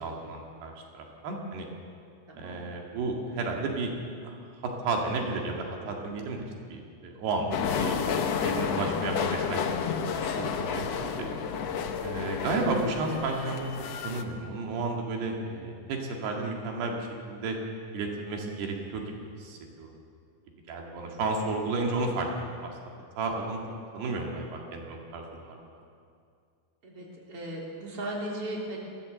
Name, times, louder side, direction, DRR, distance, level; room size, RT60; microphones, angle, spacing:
voice 1, 0.0-1.7 2.4-3.9 4.2-4.4 4.6-9.6 10.1-11.3 12.0-13.7 14.0-17.6 17.9-20.0 20.7-22.3 22.6-22.7 23.2-23.6 23.9-25.6, right 3 dB, 85° right, 1 dB, 4.1 m, -32 dB
voice 2, 2.3-2.6 26.8-28.8, right 1 dB, 35° right, -2 dB, 4.3 m, -36 dB
sound 1, 7.5-14.2, left 6 dB, 80° left, 1.4 m, -31 dB
22.0 x 16.5 x 7.7 m, 2.3 s
omnidirectional pair, 4.6 m